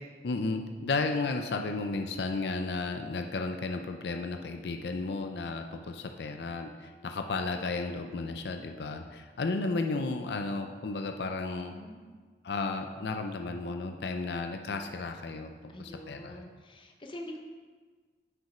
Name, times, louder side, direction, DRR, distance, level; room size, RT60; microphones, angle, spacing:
voice 1, 0.2-11.7 12.4-15.5 15.8-16.4, left 3 dB, 70° left, 5 dB, 0.5 m, -33 dB
voice 2, 11.5-12.0 15.7-17.4, left 1 dB, 30° left, 3 dB, 0.7 m, -45 dB
6.1 x 5.3 x 4.9 m, 1.5 s
head